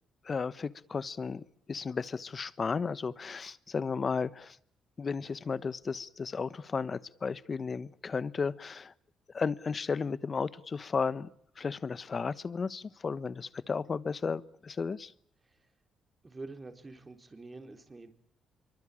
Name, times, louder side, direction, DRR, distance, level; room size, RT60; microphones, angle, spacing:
voice 1, 0.2-4.6 5.0-8.9 9.3-11.3 11.6-15.1, left 5 dB, 40° left, 17 dB, 1.2 m, -34 dB
voice 2, 16.2-18.1, right 3 dB, 25° right, 7 dB, 4.2 m, -47 dB
25.5 x 24.0 x 8.7 m, 0.66 s
cardioid pair, 90°, 0 cm